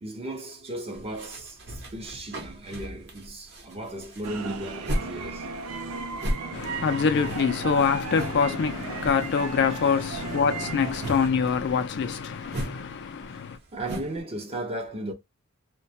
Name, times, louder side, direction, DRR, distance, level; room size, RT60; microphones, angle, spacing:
voice 1, 0.0-5.5 13.7-15.1, right 1 dB, 25° right, 0.6 m, -36 dB
sound 1, 0.9-5.2 5.4-8.5 8.7-9.4 9.7-14.2, equal, 50° right, 0.8 m, -36 dB
sound 2, 4.2-11.3, right 4 dB, 75° right, 0.5 m, -35 dB
voice 2, 6.5-13.6, left 6 dB, 50° left, 0.4 m, -25 dB
2.2 x 2.2 x 2.6 m
head